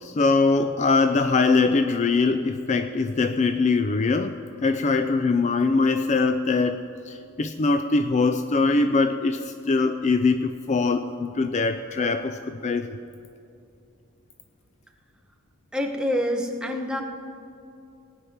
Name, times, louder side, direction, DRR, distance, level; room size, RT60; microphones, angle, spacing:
voice 1, 0.0-12.9, left 3 dB, 35° left, 9 dB, 0.4 m, -22 dB
voice 2, 15.7-17.0, equal, 5° right, 2 dB, 1.0 m, -26 dB
18.0 x 9.4 x 5.8 m, 2.6 s
head